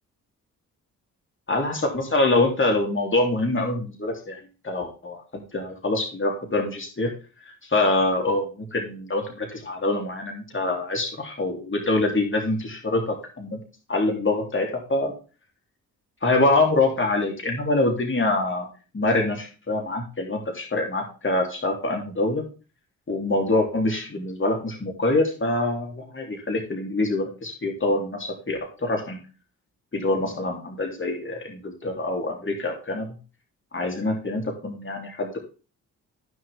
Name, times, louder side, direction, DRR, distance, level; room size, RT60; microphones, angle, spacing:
voice 1, 1.5-4.4 4.6-7.1 7.5-13.6 13.9-15.1 16.2-18.7 18.9-22.4 23.1-29.2 29.9-33.1 33.7-35.4, left 2 dB, 30° left, 2 dB, 3.6 m, -25 dB
14.0 x 6.4 x 3.7 m, 0.34 s
supercardioid pair, 50°, 37 cm